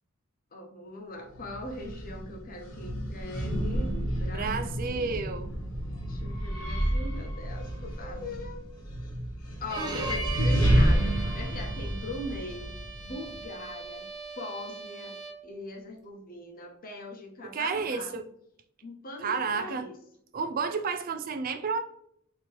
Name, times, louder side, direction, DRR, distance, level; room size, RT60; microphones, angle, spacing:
voice 1, 0.5-4.5 4.8-5.3 6.1-8.6 9.6-14.1 14.4-15.2 15.4-18.2 18.8-20.0, left 1 dB, 40° left, 0.9 m, -41 dB
sound 1, 1.3-13.4, right 1 dB, 85° left, 1.4 m, -30 dB
voice 2, 4.3-5.5 17.5-18.2 19.2-19.9 20.3-21.8, right 5 dB, 40° right, 0.4 m, -31 dB
Bowed string instrument, 9.7-15.5, right 4 dB, 20° right, 0.7 m, -40 dB
4.5 x 3.0 x 3.4 m
head